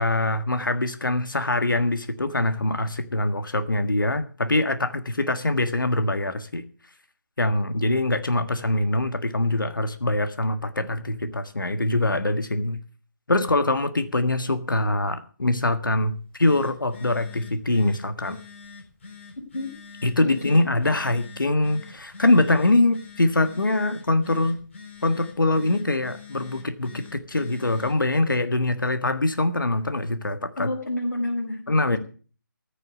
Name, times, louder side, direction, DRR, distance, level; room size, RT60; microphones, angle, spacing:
voice 1, 0.0-6.6 7.4-12.8 13.3-18.4 20.0-24.6 25.0-30.7 31.7-32.0, left 2 dB, 70° left, 9 dB, 1.6 m, -23 dB
Telephone, 16.1-28.1, left 5 dB, 35° left, 3.9 m, -46 dB
voice 2, 30.6-31.6 31.9-32.0, left 1 dB, 55° left, -2 dB, 5.3 m, -28 dB
15.0 x 7.0 x 8.3 m, 0.40 s
figure-of-eight pair, 155°, 11 cm